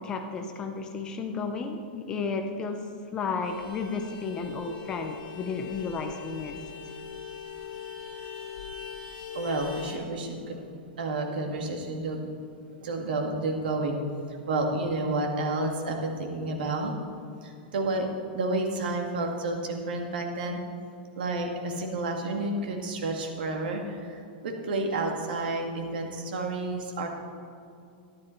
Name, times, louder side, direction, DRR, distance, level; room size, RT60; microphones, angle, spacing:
voice 1, 0.0-2.9 3.1-6.6, left 4 dB, 15° left, 6 dB, 0.5 m, -33 dB
Vehicle horn car horn honking, 3.4-10.0, left 7 dB, 45° left, 2.0 m, -41 dB
voice 2, 9.3-10.7 11.0-12.2 12.8-14.0 14.3-16.9 17.4-18.1 18.3-20.6 21.2-27.1, right 2 dB, 70° right, 2 dB, 2.1 m, -30 dB
13.0 x 11.5 x 4.5 m, 2.5 s
supercardioid pair, 180°, 5 cm